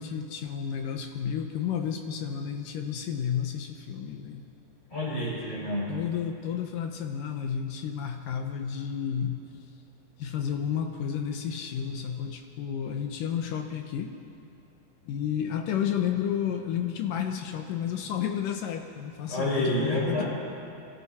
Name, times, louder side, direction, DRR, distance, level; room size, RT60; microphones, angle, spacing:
voice 1, 0.0-4.4 5.9-9.5 10.2-14.1 15.1-20.2, left 8 dB, 70° left, 5 dB, 2.2 m, -31 dB
voice 2, 4.9-5.9 19.3-20.2, left 1 dB, 35° left, -6 dB, 7.3 m, -28 dB
26.0 x 24.0 x 4.3 m, 2.6 s
omnidirectional pair, 4.6 m